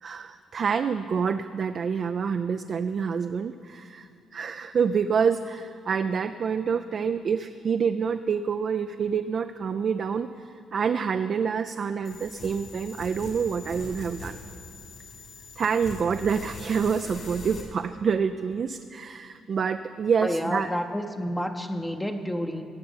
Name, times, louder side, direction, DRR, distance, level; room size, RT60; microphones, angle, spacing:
voice 1, 0.0-14.4 15.6-20.7, right 6 dB, 50° right, 8 dB, 0.4 m, -27 dB
sound 1, 12.0-17.6, left 2 dB, 65° left, 3.6 m, -42 dB
voice 2, 20.2-22.6, equal, 10° left, 4 dB, 0.7 m, -29 dB
17.0 x 6.7 x 7.1 m, 2.5 s
cardioid pair, 90°, 0 cm